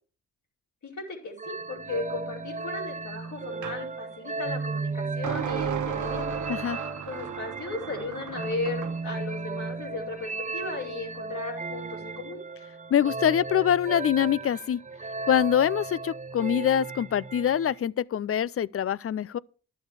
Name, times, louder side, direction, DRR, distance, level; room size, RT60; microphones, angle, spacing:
voice 1, 0.8-6.4 7.1-12.4, left 3 dB, 70° left, 5.0 m, -36 dB
sound 1, 1.4-17.8, right 4 dB, 25° right, 0.7 m, -35 dB
sound 2, 3.6-3.8 5.2-9.0, right 8 dB, 70° right, 1.1 m, -35 dB
voice 2, 12.9-14.8 15.3-19.4, left 9 dB, 45° left, 0.5 m, -24 dB
11.5 x 7.0 x 4.8 m
supercardioid pair, 50°, 31 cm